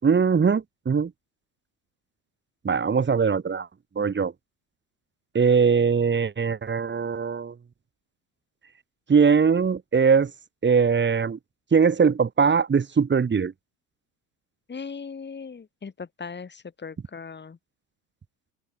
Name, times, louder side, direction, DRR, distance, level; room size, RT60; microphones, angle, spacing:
voice 1, 0.0-1.1 2.6-3.7 3.9-4.3 5.3-7.5 9.1-10.3 10.6-11.4 11.7-13.5, right 6 dB, 25° right, 4.8 m, -21 dB
voice 2, 14.7-17.6, left 5 dB, 25° left, 7.9 m, -38 dB
hypercardioid pair, 75°, 44 cm